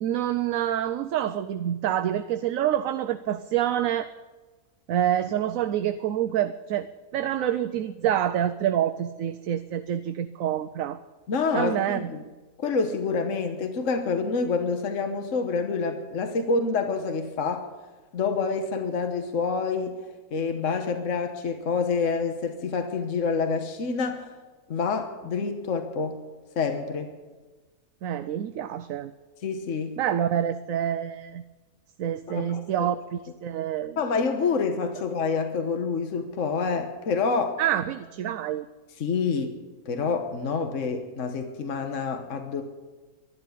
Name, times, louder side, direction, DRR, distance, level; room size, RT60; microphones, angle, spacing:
voice 1, 0.0-4.1 4.9-6.9 7.1-11.0 11.5-12.1 28.0-29.1 30.0-31.4 32.0-34.0 37.6-38.7, right 10 dB, 70° right, 10 dB, 1.0 m, -27 dB
voice 2, 11.3-12.2 12.6-17.7 18.1-20.0 20.3-24.3 24.7-26.2 26.6-27.1 29.4-30.0 32.3-32.9 34.0-37.6 39.0-39.6 39.8-42.6, left 4 dB, 55° left, 5 dB, 1.5 m, -27 dB
12.0 x 12.0 x 8.4 m, 1.3 s
omnidirectional pair, 1.6 m